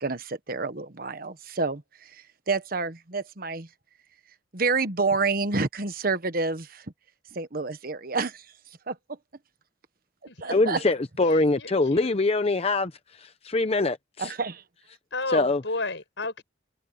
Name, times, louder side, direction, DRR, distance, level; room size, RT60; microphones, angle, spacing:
voice 1, 0.0-3.7 4.5-6.8 7.3-8.5 8.9-9.0 10.4-10.8 14.2-14.6, right 4 dB, 55° right, 1.3 m, -28 dB
voice 2, 10.5-12.9 13.2-14.3 15.3-15.6, left 2 dB, 35° left, 0.7 m, -24 dB
voice 3, 11.2-12.2 15.1-16.4, left 3 dB, 85° left, 6.2 m, -33 dB
head